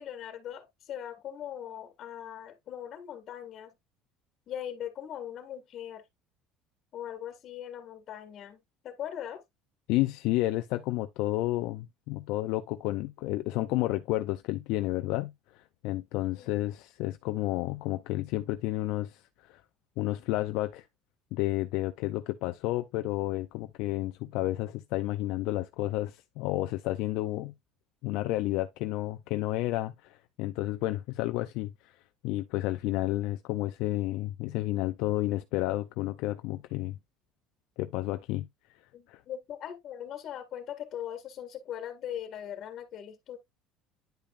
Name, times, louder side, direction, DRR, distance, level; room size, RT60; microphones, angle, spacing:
voice 1, 0.0-3.8 4.5-6.0 6.9-9.4 16.4-16.6 38.9-43.4, left 10 dB, 45° left, 1.9 m, -40 dB
voice 2, 9.9-19.6 20.0-20.9 21.3-27.5 28.0-31.9 32.2-37.0 37.8-38.8 39.1-39.2, left 17 dB, 70° left, 0.5 m, -31 dB
10.5 x 5.2 x 2.5 m
cardioid pair, 140°, 0 cm